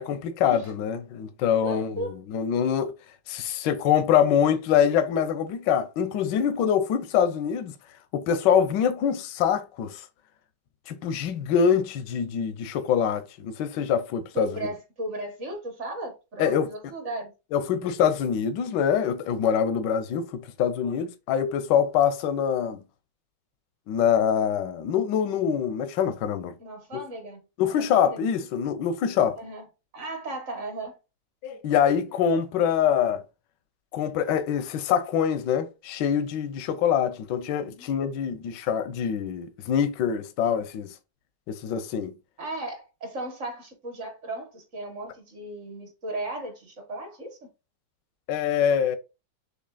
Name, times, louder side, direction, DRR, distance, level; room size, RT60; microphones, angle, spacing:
voice 1, 0.0-2.9 3.3-7.7 8.1-10.0 10.9-14.6 16.4-16.7 17.5-22.8 23.9-26.5 27.6-29.4 31.4-33.2 33.9-40.9 41.5-42.1 48.3-49.0, left 8 dB, 80° left, 1.3 m, -24 dB
voice 2, 1.6-2.2 14.3-17.3 26.6-28.2 29.4-29.7 29.9-31.0 37.6-38.4 42.4-47.4, right 2 dB, 45° right, 1.2 m, -36 dB
6.6 x 2.9 x 2.3 m
omnidirectional pair, 1.9 m